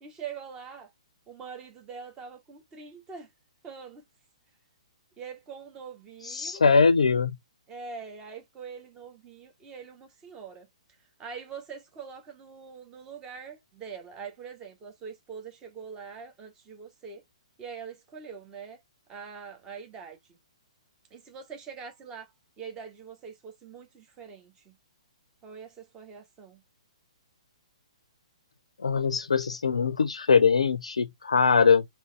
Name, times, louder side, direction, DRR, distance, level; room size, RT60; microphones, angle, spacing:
voice 1, 0.0-0.9 1.3-3.3 3.6-4.0 5.2-6.7 7.7-10.7 11.2-17.2 17.6-18.8 19.1-20.4 21.1-24.7 25.4-26.6, right 6 dB, 20° right, 1.4 m, -43 dB
voice 2, 6.2-7.4 28.8-31.8, left 5 dB, 75° left, 0.4 m, -22 dB
3.9 x 3.1 x 3.3 m
figure-of-eight pair, 125°, 3 cm